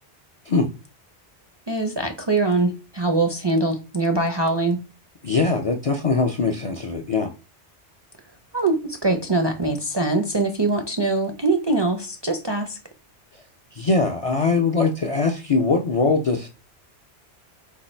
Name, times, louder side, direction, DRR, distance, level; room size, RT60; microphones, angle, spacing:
voice 1, 1.7-4.8 8.5-12.8, right 2 dB, 35° right, 0.4 m, -23 dB
voice 2, 5.2-7.3 13.7-16.5, left 4 dB, 50° left, 0.4 m, -21 dB
4.5 x 2.5 x 4.2 m
omnidirectional pair, 1.1 m